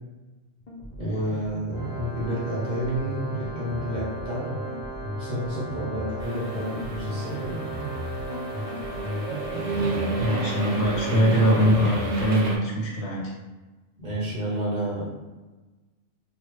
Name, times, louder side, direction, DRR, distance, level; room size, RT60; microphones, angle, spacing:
sound 1, 0.6-12.3, left 1 dB, 45° left, 0.5 m, -36 dB
voice 1, 1.0-4.5 5.1-7.6 14.0-15.0, equal, 40° right, -7 dB, 0.9 m, -30 dB
Organ, 1.7-12.5, right 2 dB, 10° left, 1.1 m, -37 dB
sound 2, 6.2-12.6, right 3 dB, 75° right, 0.9 m, -32 dB
voice 2, 10.2-13.3, equal, 65° left, -2 dB, 0.9 m, -22 dB
3.1 x 2.3 x 3.0 m, 1.2 s
omnidirectional pair, 1.3 m